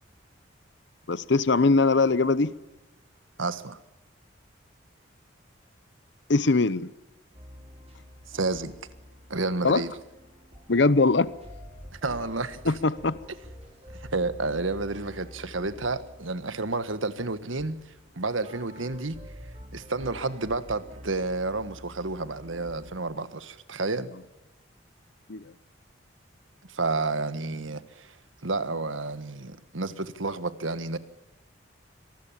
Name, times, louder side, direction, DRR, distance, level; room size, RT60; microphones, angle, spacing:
voice 1, 1.1-2.5 6.3-6.9 9.6-9.8 10.7-11.3 12.7-13.2 25.3-25.4, left 3 dB, 65° left, 0.8 m, -21 dB
voice 2, 3.4-3.8 8.3-8.7 9.3-9.9 11.9-12.7 13.3-13.4 13.9-17.8 18.1-19.2 19.7-24.1 26.7-28.1 28.4-31.0, right 3 dB, 85° right, 1.5 m, -30 dB
sound 1, 7.3-23.0, left 1 dB, 30° right, 6.3 m, -47 dB
25.5 x 19.5 x 7.4 m
head